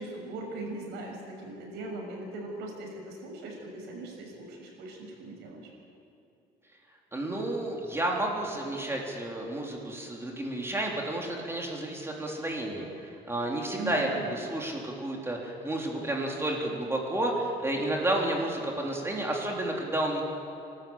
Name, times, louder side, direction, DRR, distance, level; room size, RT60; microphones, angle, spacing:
voice 1, 0.0-5.7 13.7-14.3, right 2 dB, 90° right, 0 dB, 6.3 m, -40 dB
voice 2, 7.1-20.2, right 1 dB, 15° right, -1 dB, 3.4 m, -31 dB
27.0 x 13.0 x 8.8 m, 2.6 s
cardioid pair, 110°, 17 cm